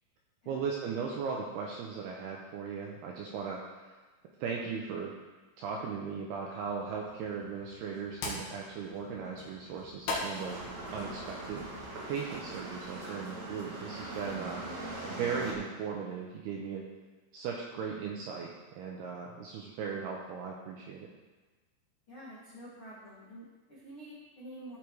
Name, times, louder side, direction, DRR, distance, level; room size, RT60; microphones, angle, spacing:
voice 1, 0.5-4.0 4.4-5.1 5.6-10.6 10.9-11.7 12.1-14.6 15.0-16.9 17.3-21.1, right 6 dB, 80° right, -1 dB, 2.3 m, -37 dB
sound 1, 6.6-12.0, left 2 dB, 60° left, 3.1 m, -42 dB
sound 2, 10.4-15.5, right 2 dB, 50° right, 2.4 m, -41 dB
voice 2, 22.1-24.8, right 1 dB, 85° left, -7 dB, 1.1 m, -48 dB
14.5 x 4.9 x 4.7 m, 1.3 s
omnidirectional pair, 5.5 m